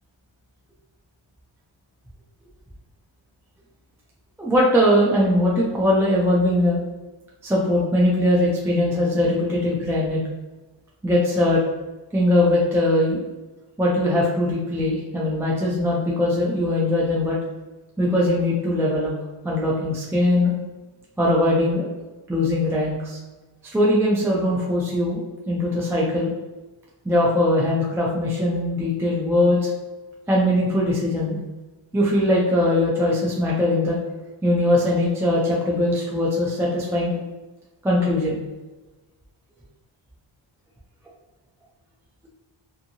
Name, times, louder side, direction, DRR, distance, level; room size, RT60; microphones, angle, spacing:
voice 1, 4.4-6.8 7.4-10.2 11.0-11.6 12.1-13.2 13.8-17.4 18.0-19.1 19.4-20.5 21.2-21.9 22.3-23.2 23.7-25.2 25.5-26.3 27.0-29.7 30.3-31.4 31.9-34.0 34.4-37.1 37.8-38.4, left 1 dB, 5° right, -5 dB, 0.3 m, -21 dB
2.7 x 2.6 x 2.7 m, 1.2 s
wide cardioid pair, 135°, 48 cm